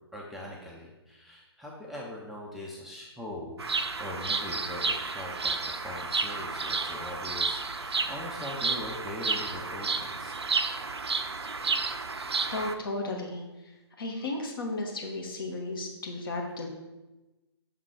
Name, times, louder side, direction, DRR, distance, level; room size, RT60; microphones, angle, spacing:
voice 1, 0.1-3.6 4.0-10.4, left 1 dB, ahead, -5 dB, 0.4 m, -41 dB
Bird vocalization bird call bird song, 3.6-12.7, right 4 dB, 75° right, 0.5 m, -31 dB
voice 2, 12.5-16.7, left 2 dB, 55° left, 1 dB, 1.3 m, -34 dB
6.4 x 3.6 x 4.6 m, 1.1 s
figure-of-eight pair, 130°, 14 cm